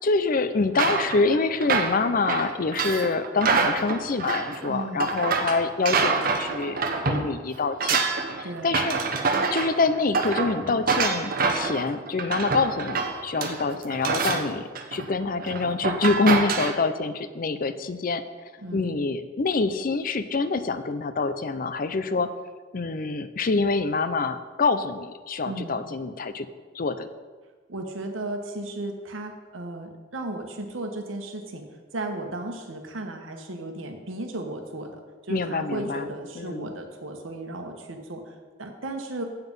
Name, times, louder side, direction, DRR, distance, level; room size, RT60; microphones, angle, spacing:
voice 1, 0.0-6.8 7.1-8.1 8.3-9.0 9.5-18.2 18.7-22.3 22.7-26.5 26.7-27.1 35.3-36.1 36.3-36.7, left 3 dB, 45° left, 11 dB, 0.5 m, -26 dB
sound 1, 0.7-7.3 7.6-16.7, right 4 dB, 45° right, 0.8 m, -26 dB
voice 2, 4.7-5.1 8.4-8.7 18.6-18.9 25.4-25.8 27.7-31.6 31.9-35.0 35.3-39.2, right 2 dB, 80° right, 4 dB, 1.2 m, -35 dB
8.0 x 7.1 x 5.4 m, 1.4 s
head